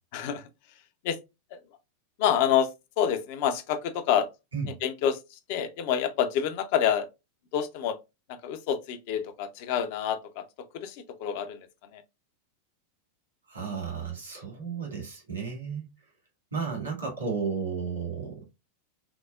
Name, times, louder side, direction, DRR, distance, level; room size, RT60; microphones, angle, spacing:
voice 1, 0.1-0.5 1.0-1.2 1.5-1.6 2.2-4.3 4.8-7.1 7.5-8.0 8.4-10.4 10.7-11.7 11.9-12.0, left 9 dB, 50° left, 0.5 m, -27 dB
voice 2, 13.5-15.9 16.5-18.4, right 5 dB, 80° right, 1.8 m, -33 dB
5.8 x 2.0 x 2.2 m
figure-of-eight pair, 90°, 0 cm